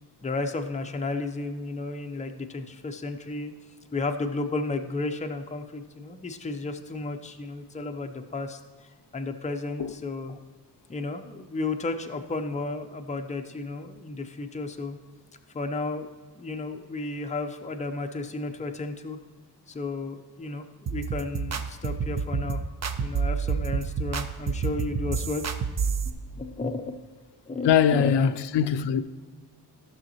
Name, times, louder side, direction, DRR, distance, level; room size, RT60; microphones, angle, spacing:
voice 1, 0.2-3.5 3.9-10.4 10.9-15.0 15.5-16.1 16.3-19.2 19.7-22.6 23.0-25.4 26.1-27.0 27.5-28.1, left 3 dB, 20° left, 0.5 m, -33 dB
sound 1, 20.9-26.1, right 6 dB, 40° right, 0.5 m, -29 dB
voice 2, 27.6-29.0, left 8 dB, 85° left, 0.5 m, -22 dB
15.0 x 6.3 x 2.9 m
wide cardioid pair, 140°, 41 cm